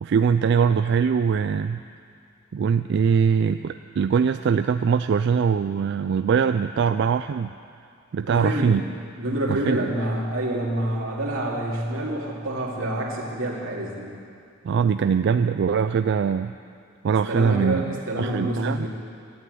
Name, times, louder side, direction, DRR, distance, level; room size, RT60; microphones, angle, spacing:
voice 1, 0.0-1.8 2.5-7.5 8.1-8.8 9.5-9.9 14.6-16.5 17.0-18.9, right 6 dB, 60° right, 9 dB, 0.3 m, -22 dB
voice 2, 8.3-8.9 9.2-14.1 17.3-18.9, right 1 dB, 85° right, -2 dB, 2.5 m, -27 dB
13.0 x 8.4 x 9.3 m, 2.5 s
head